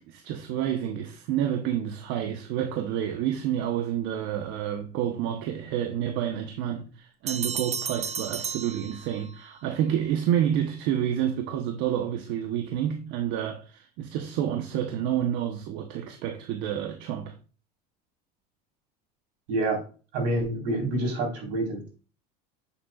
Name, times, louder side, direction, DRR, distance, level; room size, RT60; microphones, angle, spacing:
voice 1, 0.1-17.3, right 10 dB, 65° right, 1.1 m, -29 dB
sound 1, 7.3-9.5, right 6 dB, 35° right, 0.8 m, -33 dB
voice 2, 19.5-19.8 20.1-21.9, right 2 dB, 80° right, 4.2 m, -27 dB
9.1 x 7.0 x 2.4 m
supercardioid pair, 105°, 20 cm